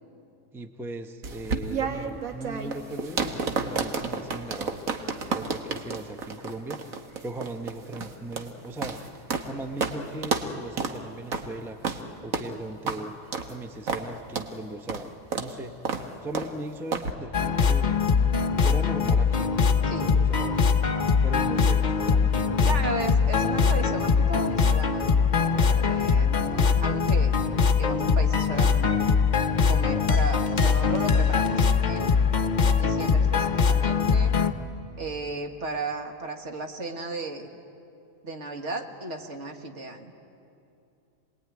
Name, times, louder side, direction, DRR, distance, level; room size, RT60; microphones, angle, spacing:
voice 1, 0.5-4.8 5.3-6.8 7.2-9.0 9.5-11.8 12.2-13.1 13.5-15.1 15.4-15.7 16.2-18.0 18.6-19.5 20.0-20.6 21.2-23.1, right 2 dB, ahead, 6 dB, 0.8 m, -38 dB
sound 1, 1.2-9.5 9.8-10.0 10.2-10.5 10.8-11.0 11.3-11.5 11.8-12.0 12.3-12.5 12.9-13.0 13.3-13.5 13.9-14.1 14.4-14.5 14.9-15.1 15.3-15.5 15.9-16.1 16.4-16.5 16.9-17.1, right 5 dB, 80° right, 1.7 m, -30 dB
sound 2, 17.3-34.5, left 5 dB, 40° left, 0.9 m, -22 dB
voice 2, 22.6-25.1 25.6-27.3 27.8-29.0 29.7-32.1 32.8-34.4 35.0-37.5 38.2-40.1, right 2 dB, 60° right, 4 dB, 1.9 m, -35 dB
26.5 x 20.5 x 9.6 m, 2.7 s
omnidirectional pair, 1.4 m